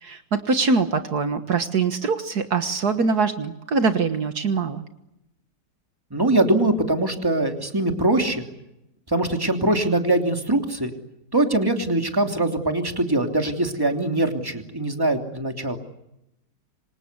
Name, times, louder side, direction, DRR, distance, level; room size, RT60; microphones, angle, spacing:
voice 1, 0.0-4.8, right 4 dB, 65° right, 8 dB, 2.0 m, -23 dB
voice 2, 6.1-8.5 9.1-10.9 11.3-15.8, right 2 dB, 10° right, 4 dB, 3.0 m, -22 dB
27.5 x 25.5 x 8.3 m, 0.86 s
omnidirectional pair, 1.8 m